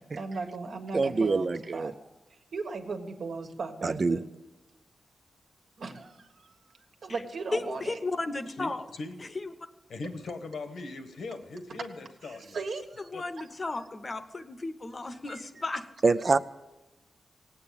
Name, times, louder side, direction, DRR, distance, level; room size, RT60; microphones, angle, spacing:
voice 1, 0.1-1.9 2.5-4.2 5.8-8.0 12.2-13.1 15.3-15.4 16.3-16.4, right 4 dB, 65° right, 5 dB, 1.6 m, -37 dB
voice 2, 0.9-1.9 3.8-4.2 16.0-16.4, right 3 dB, 40° right, 12 dB, 0.4 m, -25 dB
voice 3, 7.5-8.8 9.2-9.5 13.1-15.9, left 3 dB, 30° left, 10 dB, 0.9 m, -34 dB
voice 4, 8.6-9.3 9.9-12.6 13.1-13.2, left 3 dB, 80° left, 8 dB, 1.4 m, -40 dB
18.0 x 8.7 x 8.5 m, 1.1 s
wide cardioid pair, 140°, 0 cm